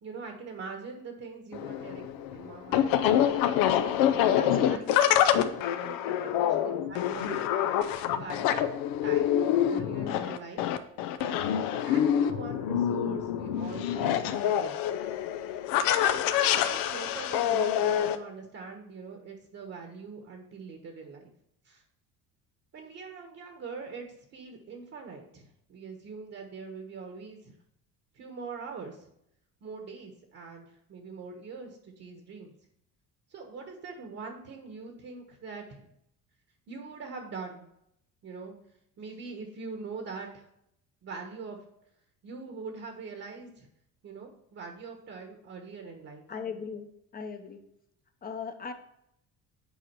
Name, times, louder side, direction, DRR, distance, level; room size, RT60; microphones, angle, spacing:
voice 1, 0.0-2.9 3.6-4.2 4.6-6.6 6.9-7.5 8.1-8.6 9.0-10.6 11.9-14.8 15.9-21.3 21.6-21.8 22.7-27.5 28.1-29.1 29.6-32.5 33.3-35.9 36.7-37.7 38.2-38.6 39.0-40.5 41.0-41.6 42.2-43.7 44.0-46.2, right 4 dB, 45° right, 3 dB, 1.3 m, -43 dB
sound 1, 1.5-18.1, left 10 dB, 80° left, 0.8 m, -26 dB
voice 2, 4.4-4.9 46.3-46.9 47.1-47.6 48.2-48.7, left 5 dB, 25° left, 7 dB, 0.9 m, -37 dB
8.5 x 4.8 x 4.6 m, 0.76 s
cardioid pair, 130°, 34 cm